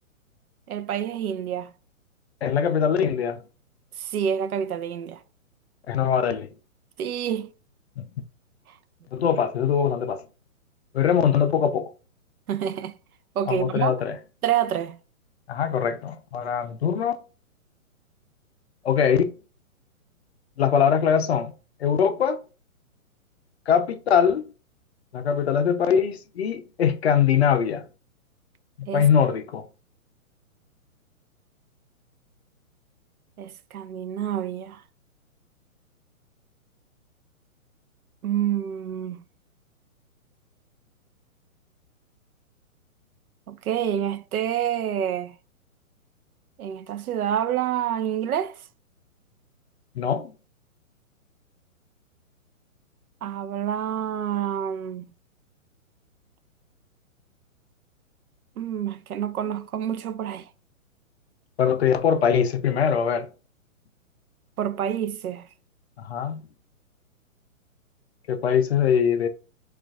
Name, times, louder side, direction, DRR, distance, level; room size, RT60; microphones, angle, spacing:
voice 1, 0.7-1.7 4.0-5.2 7.0-7.5 12.5-13.0 13.4-13.9 14.4-15.0 28.9-29.1 33.4-34.8 38.2-39.2 43.5-45.4 46.6-48.6 53.2-55.1 58.6-60.5 64.6-65.5, right 9 dB, 85° right, 0.6 m, -28 dB
voice 2, 2.4-3.4 5.9-6.5 8.0-8.1 9.1-10.2 10.9-11.9 13.5-14.2 15.5-17.1 18.8-19.3 20.6-21.5 21.8-22.4 23.7-24.5 25.1-27.9 28.8-29.6 49.9-50.3 61.6-63.3 66.0-66.4 68.3-69.3, left 7 dB, 50° left, 0.5 m, -22 dB
6.2 x 2.4 x 2.3 m
hypercardioid pair, 150°, 42 cm